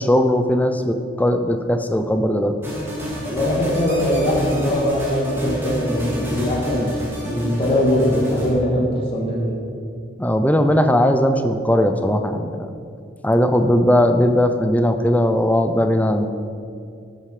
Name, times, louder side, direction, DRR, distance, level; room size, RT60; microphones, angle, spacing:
voice 1, 0.0-2.6 10.2-12.7 13.2-16.3, equal, 10° left, 7 dB, 0.6 m, -18 dB
sound 1, 2.6-8.5, equal, 10° right, 2.6 m, -29 dB
voice 2, 3.1-7.0 7.2-9.6, equal, 30° left, -4 dB, 2.1 m, -21 dB
13.5 x 9.0 x 5.0 m, 2.4 s
head